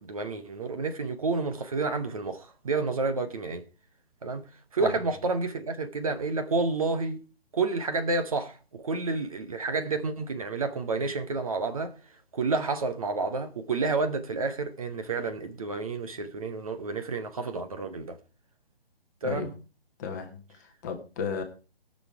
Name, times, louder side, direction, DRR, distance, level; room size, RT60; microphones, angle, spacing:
voice 1, 0.0-3.6 4.2-4.4 4.7-7.2 7.5-11.9 12.3-18.2 19.2-19.5, right 3 dB, 35° right, 0.9 m, -30 dB
voice 2, 20.0-21.4, left 6 dB, 15° left, 1.2 m, -34 dB
18.0 x 6.4 x 4.6 m
figure-of-eight pair, 140°, 31 cm